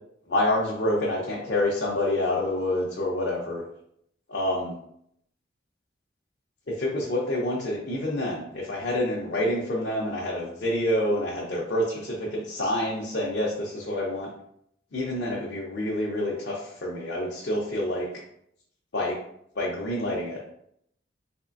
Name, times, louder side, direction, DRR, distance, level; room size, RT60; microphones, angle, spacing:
voice 1, 0.3-3.6 4.3-4.7 6.8-14.3 14.9-18.1 18.9-19.1 19.6-20.5, left 1 dB, 65° left, -5 dB, 0.7 m, -27 dB
3.5 x 3.2 x 2.5 m, 0.71 s
head